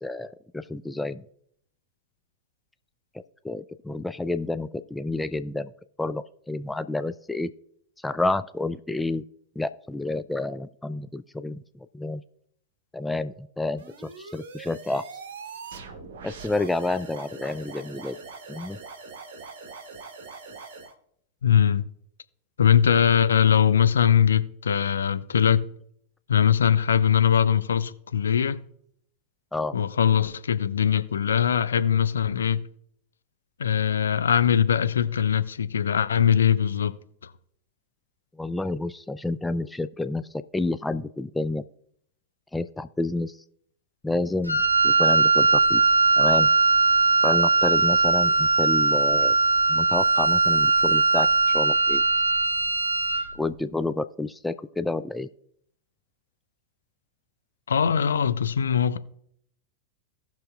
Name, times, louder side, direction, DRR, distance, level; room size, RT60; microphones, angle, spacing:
voice 1, 0.0-1.2 3.4-5.7 6.0-7.5 8.0-9.2 9.6-12.2 12.9-15.0 16.2-18.2 18.5-18.8 29.5-29.8 38.4-40.3 40.5-41.6 42.5-43.4 44.0-45.8 46.2-46.5 47.2-49.4 49.7-52.0 53.4-55.3, left 2 dB, 5° left, 0.3 m, -29 dB
sound 1, 13.8-20.9, right 4 dB, 55° right, 1.0 m, -42 dB
voice 2, 21.4-21.8 22.6-25.7 26.3-28.6 29.7-32.6 33.6-36.9 57.7-59.0, left 8 dB, 70° left, 0.5 m, -21 dB
Wind instrument woodwind instrument, 44.4-53.3, right 3 dB, 85° right, 0.6 m, -20 dB
17.5 x 6.0 x 2.3 m
figure-of-eight pair, 90°, 0 cm